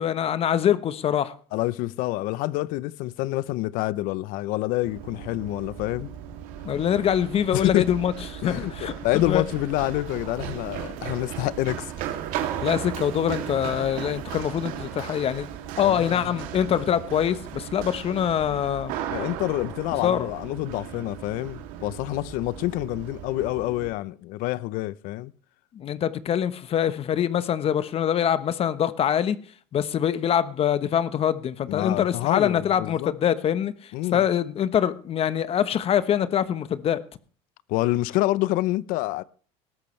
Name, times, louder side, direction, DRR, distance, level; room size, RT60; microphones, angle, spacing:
voice 1, 0.0-1.3 6.6-8.1 8.4-9.0 9.3-9.4 12.6-15.5 15.8-18.9 20.0-20.3 25.7-29.4 29.7-37.0, left 9 dB, 40° left, 1.1 m, -24 dB
voice 2, 1.5-6.1 7.5-7.9 8.4-12.1 15.8-16.4 19.1-25.3 31.7-33.1 33.9-34.2 37.7-39.2, left 17 dB, 65° left, 0.8 m, -27 dB
Run, 4.8-23.9, right 10 dB, 70° right, 2.7 m, -36 dB
19.0 x 13.5 x 3.3 m
supercardioid pair, 110°, 15 cm